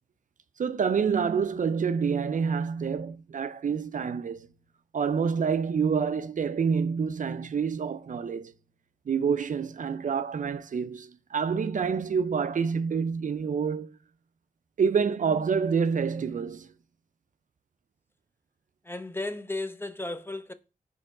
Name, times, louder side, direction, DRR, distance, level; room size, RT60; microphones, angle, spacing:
voice 1, 0.6-4.5 4.9-8.5 9.1-13.9 14.8-16.7, right 6 dB, 60° right, 0.4 m, -27 dB
voice 2, 18.8-20.5, left 2 dB, 15° left, 0.5 m, -34 dB
4.3 x 3.0 x 3.7 m
cardioid pair, 45°, 15 cm